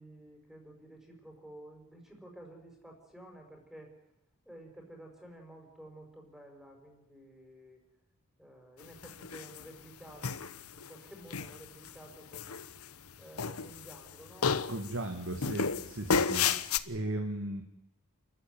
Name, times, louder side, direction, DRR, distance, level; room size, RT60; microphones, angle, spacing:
voice 1, 0.0-3.9 4.5-7.8 8.4-12.6 13.2-14.6, right 1 dB, ahead, 2 dB, 5.3 m, -52 dB
sound 1, 9.0-9.7 10.2-10.9 11.3-11.9 12.3-13.1 13.4-14.1 14.4-14.9 15.4-16.8, left 5 dB, 80° left, 1.0 m, -31 dB
voice 2, 14.7-16.5 16.9-17.6, right 1 dB, 60° right, 5 dB, 1.9 m, -36 dB
29.0 x 14.5 x 9.4 m, 0.81 s
head